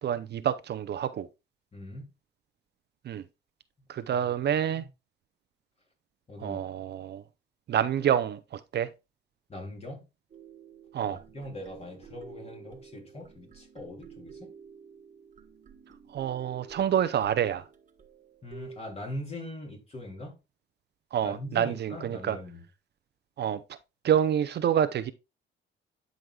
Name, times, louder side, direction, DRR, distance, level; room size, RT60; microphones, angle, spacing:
voice 1, 0.0-1.3 3.0-3.2 3.9-4.9 6.4-7.2 7.7-8.9 10.9-11.2 16.1-17.7 21.1-22.4 23.4-23.8 24.0-25.1, right 9 dB, 55° right, 0.6 m, -27 dB
voice 2, 1.7-2.1 4.1-4.3 4.7-4.9 6.3-6.6 9.5-10.1 11.0-14.5 18.4-20.4 21.2-22.6, left 1 dB, 30° left, 3.4 m, -41 dB
sound 1, 10.3-18.8, right 6 dB, 40° right, 1.3 m, -51 dB
11.0 x 5.2 x 2.3 m
cardioid pair, 90°, 20 cm